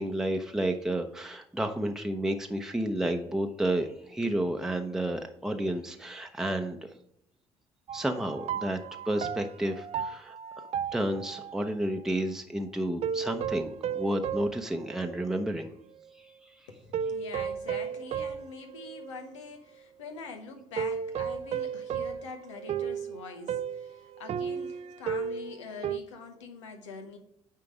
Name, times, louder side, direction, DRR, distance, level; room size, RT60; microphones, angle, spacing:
voice 1, 0.0-6.8 7.9-8.8 9.1-10.4 10.9-15.7, right 1 dB, 5° right, 4 dB, 0.8 m, -31 dB
sound 1, 7.9-11.7 13.0-15.6 16.0-16.1 16.9-19.4 20.8-26.0, right 7 dB, 45° right, 0.4 m, -34 dB
voice 2, 16.7-27.2, left 4 dB, 85° left, 6 dB, 1.0 m, -44 dB
9.5 x 3.8 x 5.1 m, 0.73 s
hypercardioid pair, 50°, 15 cm